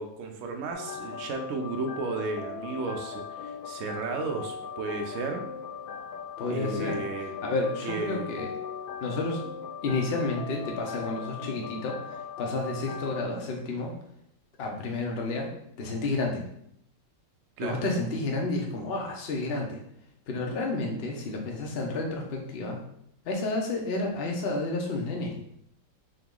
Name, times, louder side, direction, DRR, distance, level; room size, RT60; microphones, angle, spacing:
voice 1, 0.0-5.4 6.5-7.4 7.8-8.3 17.6-17.8, right 3 dB, 85° right, 3 dB, 0.6 m, -34 dB
sound 1, 0.7-13.2, left 7 dB, 80° left, 1.4 m, -39 dB
voice 2, 6.4-7.0 7.4-8.5 9.0-9.4 9.8-12.0 12.4-13.9 14.6-15.5 15.8-16.4 17.6-19.8 20.3-22.8 23.2-25.3, left 2 dB, 65° left, 0 dB, 0.6 m, -30 dB
3.8 x 2.9 x 3.7 m, 0.72 s
omnidirectional pair, 2.1 m